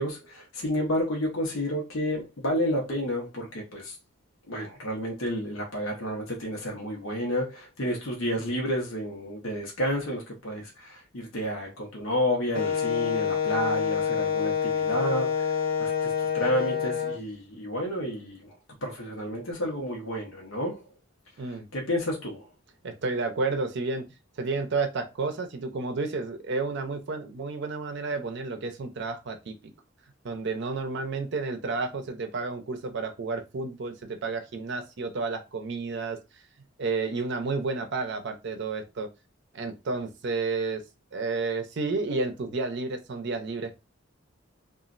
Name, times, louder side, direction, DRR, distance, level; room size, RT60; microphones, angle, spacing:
voice 1, 0.0-4.0 4.5-20.9 21.5-22.5, equal, 85° left, 0.8 m, -31 dB
Wind instrument woodwind instrument, 12.5-17.2, left 7 dB, 50° left, 0.5 m, -27 dB
voice 2, 22.8-24.1 24.4-29.5 30.2-36.2 36.8-39.1 39.5-40.8 41.1-43.8, right 3 dB, 60° right, 0.5 m, -31 dB
3.0 x 2.4 x 2.5 m
head